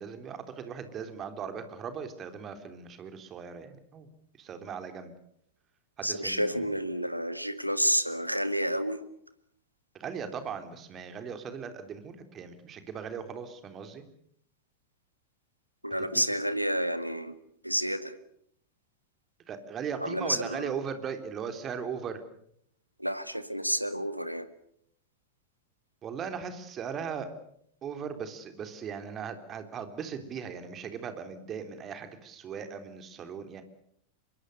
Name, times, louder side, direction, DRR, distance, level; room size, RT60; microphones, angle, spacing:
voice 1, 0.0-4.1 4.4-5.1 6.0-6.6 9.9-14.0 16.0-16.2 19.5-22.2 26.0-27.3 27.8-33.6, right 6 dB, 30° right, 8 dB, 3.6 m, -38 dB
voice 2, 6.0-9.0 15.8-17.4 17.6-18.2 20.0-20.7 23.0-24.5, equal, 90° right, 12 dB, 1.8 m, -30 dB
26.0 x 23.0 x 6.7 m, 0.68 s
figure-of-eight pair, 90°, 0 cm